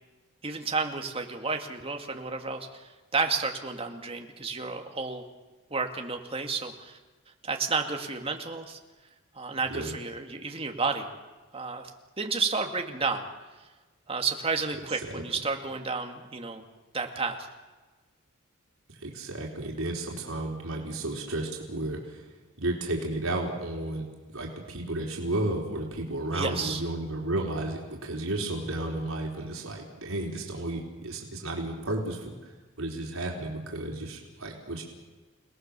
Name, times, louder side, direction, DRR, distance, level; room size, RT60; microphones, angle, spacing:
voice 1, 0.4-2.7 3.1-5.2 5.7-7.0 7.4-8.8 9.4-11.1 11.5-11.9 12.2-13.2 14.1-16.6 16.9-17.5 26.3-26.8, right 4 dB, 25° right, 4 dB, 2.1 m, -31 dB
voice 2, 18.9-22.2 22.6-24.1 24.3-32.5 32.8-34.8, right 2 dB, 85° right, 0 dB, 4.2 m, -33 dB
29.5 x 18.5 x 6.9 m, 1.3 s
head